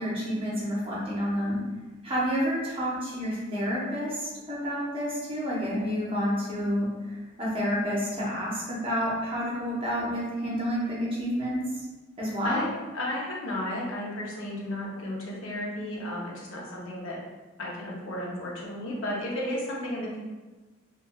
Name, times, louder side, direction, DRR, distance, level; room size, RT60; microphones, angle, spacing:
voice 1, 0.0-1.6 2.0-11.6 12.2-12.7, equal, 25° right, -5 dB, 0.7 m, -29 dB
voice 2, 12.9-17.2 17.6-20.2, left 1 dB, 75° left, -3 dB, 0.6 m, -33 dB
3.1 x 2.3 x 2.2 m, 1.2 s
head